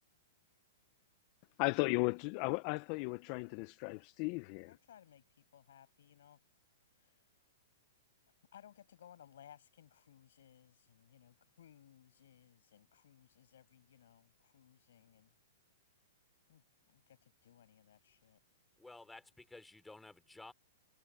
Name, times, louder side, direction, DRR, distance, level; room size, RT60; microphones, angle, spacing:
voice 1, 1.6-4.7, left 26 dB, 45° left, 0.7 m, -35 dB
voice 2, 4.7-6.4 7.0-7.2 8.5-15.3 16.5-18.4, left 10 dB, 75° left, 7.1 m, -61 dB
voice 3, 18.8-20.5, left 2 dB, 5° left, 4.1 m, -54 dB
hypercardioid pair, 130°, 0 cm